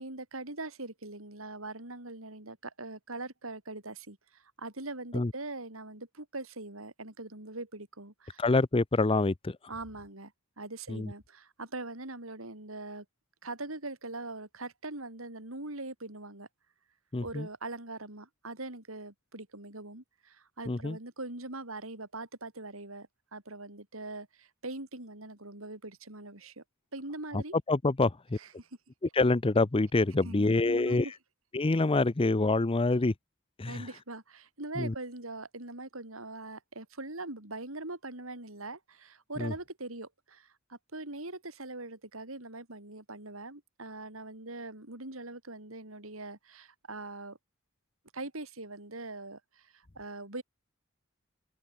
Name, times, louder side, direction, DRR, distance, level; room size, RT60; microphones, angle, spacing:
voice 1, 0.0-8.4 9.7-10.3 10.6-13.1 13.4-16.5 17.2-26.6 26.9-27.6 28.4-28.7 30.2-31.0 33.7-47.4 48.1-50.4, right 2 dB, 80° right, 5.9 m, -42 dB
voice 2, 8.4-9.6 10.9-11.1 17.1-17.5 20.7-21.0 27.3-27.4 27.7-28.4 29.1-31.1 31.5-33.1 33.6-33.9 34.8-34.9 39.4-39.5, left 2 dB, 25° left, 0.7 m, -26 dB
head